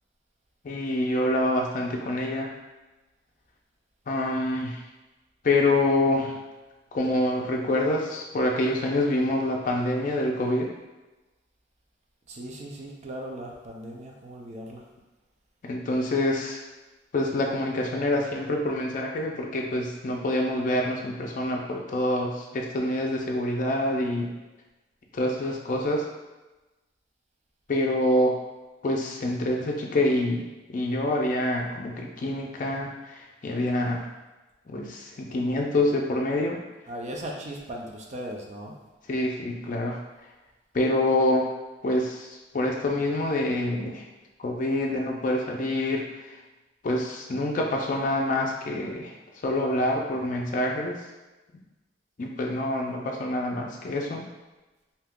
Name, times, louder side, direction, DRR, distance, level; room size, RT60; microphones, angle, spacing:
voice 1, 0.6-2.5 4.1-4.8 5.4-6.4 6.9-10.7 15.6-16.6 17.1-24.4 25.1-26.1 27.7-28.4 28.8-34.1 34.7-36.6 39.1-40.0 40.7-41.5 41.8-44.0 44.4-46.4 46.8-49.1 49.4-51.0 52.2-54.3, left 1 dB, 45° left, 0 dB, 0.4 m, -26 dB
voice 2, 12.3-14.8 36.9-38.7, right 1 dB, 40° right, 0 dB, 0.4 m, -38 dB
2.8 x 2.3 x 3.5 m, 1.1 s
head